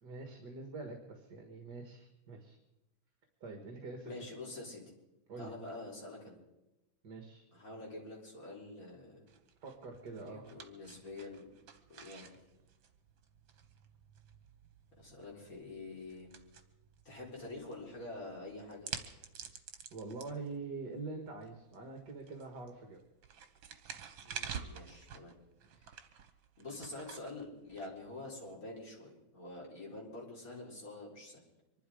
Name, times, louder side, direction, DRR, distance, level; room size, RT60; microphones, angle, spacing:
voice 1, 0.0-2.6 3.4-4.1 5.3-5.6 7.0-7.4 9.6-10.5 19.9-23.0, right 3 dB, 60° right, 4 dB, 2.2 m, -45 dB
voice 2, 4.0-4.8 5.4-6.4 7.5-9.3 10.2-11.5 11.9-12.4 15.0-16.4 17.0-18.9 24.2-25.3 25.8-25.9 26.6-31.4, left 2 dB, 45° left, -3 dB, 4.5 m, -47 dB
sound 1, 9.3-28.5, right 7 dB, 85° right, 1.9 m, -50 dB
25.0 x 11.5 x 5.0 m, 0.97 s
omnidirectional pair, 2.1 m